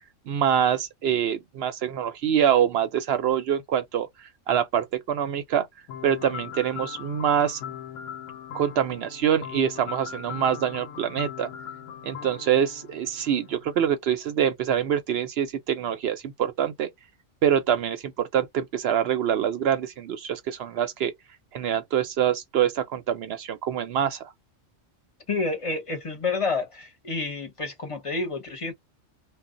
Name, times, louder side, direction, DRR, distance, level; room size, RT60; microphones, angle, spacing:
voice 1, 0.3-4.1 4.5-5.7 6.0-7.6 8.5-11.5 12.0-16.9 17.4-21.1 21.5-24.2, right 9 dB, 65° right, 0.7 m, -25 dB
sound 1, 5.9-13.7, left 8 dB, 80° left, 0.9 m, -40 dB
voice 2, 25.3-28.7, left 3 dB, 30° left, 0.7 m, -29 dB
2.1 x 2.1 x 3.7 m
omnidirectional pair, 1.3 m